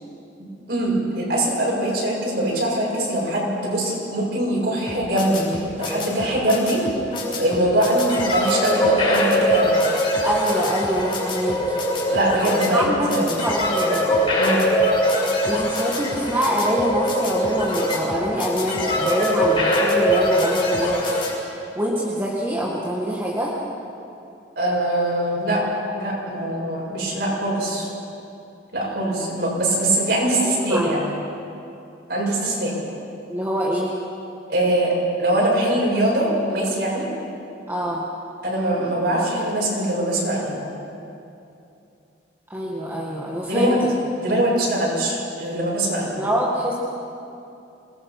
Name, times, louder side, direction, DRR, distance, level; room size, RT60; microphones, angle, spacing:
voice 1, 0.4-6.8 7.3-9.8 12.1-13.3 14.4-14.6 24.6-25.6 26.0-27.9 28.7-31.0 32.1-32.7 34.5-37.1 38.4-40.6 43.4-43.8 44.2-46.2, right 1 dB, 60° right, -5 dB, 7.8 m, -22 dB
sound 1, 4.9-21.3, equal, 30° left, 6.5 m, -22 dB
voice 2, 10.2-11.8 12.6-14.1 15.5-23.5 30.4-31.0 33.3-33.9 37.7-38.0 42.5-43.9 46.2-46.7, equal, 10° right, -5 dB, 1.9 m, -25 dB
27.5 x 20.5 x 5.9 m, 2.7 s
head